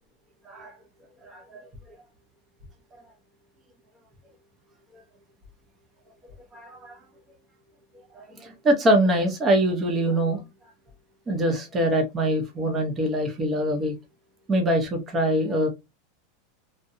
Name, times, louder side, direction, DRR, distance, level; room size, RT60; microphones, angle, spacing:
voice 1, 1.2-1.7 6.5-7.0 8.1-10.4 11.3-13.9 14.5-15.7, right 1 dB, 20° right, 0.6 m, -24 dB
2.7 x 2.1 x 2.4 m
supercardioid pair, 160°, 0 cm